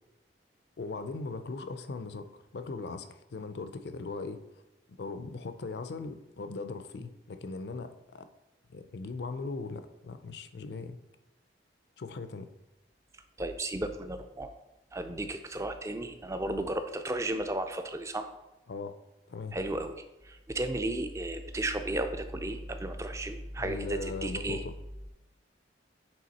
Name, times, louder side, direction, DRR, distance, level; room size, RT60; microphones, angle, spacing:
voice 1, 0.8-4.4 5.0-8.3 8.7-11.0 12.0-12.5 18.7-18.9 19.3-19.6 23.6-24.6, left 3 dB, 65° left, 10 dB, 0.5 m, -39 dB
voice 2, 13.4-14.5 14.9-18.3 19.5-24.6, right 1 dB, 15° right, 8 dB, 0.4 m, -34 dB
7.7 x 3.6 x 4.1 m, 0.97 s
head